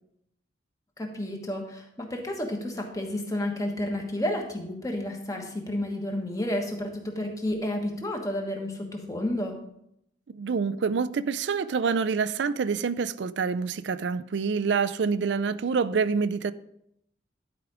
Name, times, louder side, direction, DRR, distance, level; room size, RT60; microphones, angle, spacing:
voice 1, 1.0-9.6, left 1 dB, 20° left, 1.3 m, -31 dB
voice 2, 10.3-16.5, right 5 dB, 70° right, 0.4 m, -27 dB
11.5 x 5.0 x 4.9 m
head